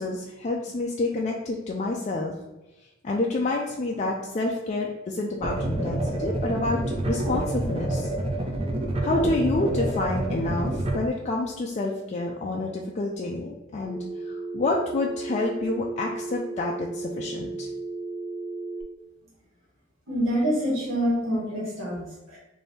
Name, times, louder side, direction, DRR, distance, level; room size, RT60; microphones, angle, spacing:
voice 1, 0.0-2.3 3.0-8.1 9.0-17.7, left 2 dB, 35° left, -1 dB, 0.4 m, -28 dB
sound 1, 5.4-11.0, right 1 dB, 30° right, 0.5 m, -28 dB
Telephone, 13.8-18.8, right 3 dB, 70° right, 1.3 m, -34 dB
voice 2, 20.1-22.4, equal, 85° right, -5 dB, 1.4 m, -26 dB
3.4 x 2.6 x 4.1 m, 1.0 s
head